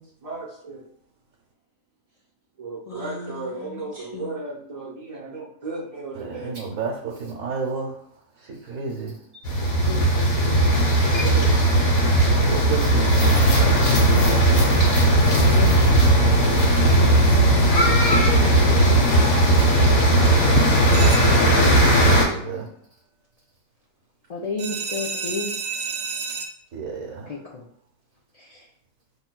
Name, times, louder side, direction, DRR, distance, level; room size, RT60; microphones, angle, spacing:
voice 1, 0.2-0.8 2.6-6.5 11.2-11.5, right 3 dB, 40° right, -5 dB, 0.6 m, -34 dB
voice 2, 2.9-4.4 9.8-10.0 14.7-14.8 15.4-15.9 17.0-17.4 24.3-25.5 27.3-27.6 28.4-28.6, left 3 dB, 70° left, -3 dB, 0.3 m, -34 dB
voice 3, 6.1-8.0 8.4-9.2 11.7-11.8 12.3-13.6 14.2-14.5 21.2-22.7 26.7-27.3, right 4 dB, 80° right, -3 dB, 1.2 m, -32 dB
sound 1, 9.4-22.3, right 1 dB, 85° left, 1.4 m, -17 dB
sound 2, 20.9-21.7 24.6-26.5, right 5 dB, 60° right, 0.9 m, -31 dB
5.3 x 3.0 x 2.2 m, 0.68 s
omnidirectional pair, 1.4 m